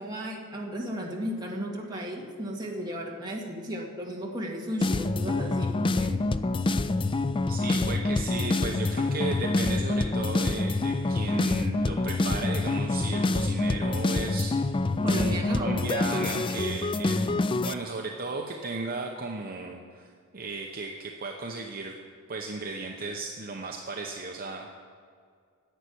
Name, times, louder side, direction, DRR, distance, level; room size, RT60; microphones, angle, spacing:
voice 1, 0.0-6.2 15.0-16.0, equal, 20° right, -2 dB, 2.1 m, -35 dB
sound 1, 4.8-17.7, left 2 dB, 20° left, 0.4 m, -26 dB
voice 2, 7.5-14.7 15.0-17.2 17.6-21.9 22.3-24.7, right 3 dB, 40° right, 1 dB, 0.9 m, -35 dB
11.0 x 8.2 x 10.0 m, 2.1 s
head